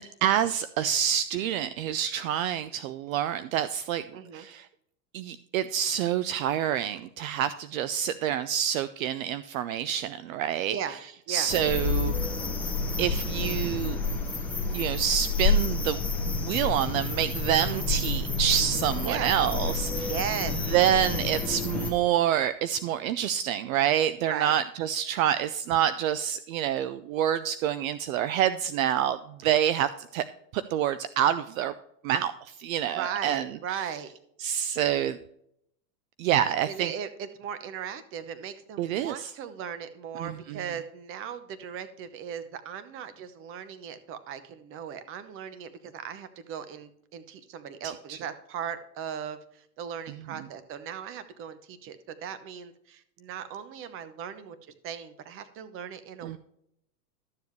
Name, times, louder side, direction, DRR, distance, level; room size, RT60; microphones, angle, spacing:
voice 1, 0.0-4.0 4.3-4.7 5.1-10.8 11.3-12.1 13.0-14.0 14.7-16.0 16.4-20.1 20.7-30.2 30.5-31.7 32.0-33.5 34.4-35.2 36.2-36.9 38.8-39.3 40.2-40.6 48.1-48.2 56.2-56.4, right 10 dB, 55° right, 14 dB, 0.6 m, -27 dB
voice 2, 4.1-4.5 10.7-11.0 11.3-11.5 17.6-17.8 19.0-19.3 20.1-20.6 24.2-24.5 32.9-34.1 36.7-54.6 54.8-56.4, right 8 dB, 25° right, 12 dB, 0.8 m, -37 dB
sound 1, 11.5-21.9, left 3 dB, 5° left, 1.4 m, -29 dB
12.5 x 7.2 x 3.1 m, 0.73 s
supercardioid pair, 135°, 49 cm